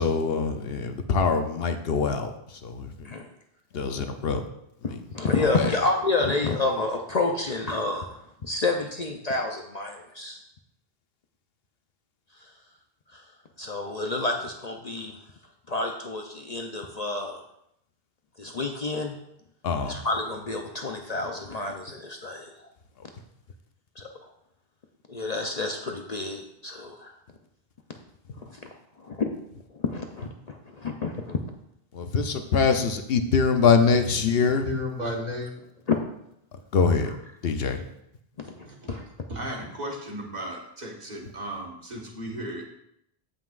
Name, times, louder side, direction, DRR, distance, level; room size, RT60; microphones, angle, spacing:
voice 1, 0.0-2.3 2.6-2.9 3.7-4.4 19.6-19.9 31.9-34.7 36.7-37.1 37.4-37.8, left 5 dB, 70° left, 7 dB, 0.9 m, -23 dB
voice 2, 4.8-10.4 12.3-12.5 13.1-13.2 13.6-15.2 15.7-17.4 18.4-19.2 19.8-22.7 24.0-24.3 25.1-27.2 28.4-28.7 29.0-29.3 29.7-31.4 35.9-36.0 37.0-37.2 38.4-38.6 38.9-39.0, left 3 dB, 45° left, 3 dB, 0.7 m, -29 dB
voice 3, 34.1-35.5 38.6-39.0 39.3-42.7, equal, 45° right, -1 dB, 1.7 m, -35 dB
15.0 x 5.8 x 2.5 m, 0.78 s
omnidirectional pair, 1.0 m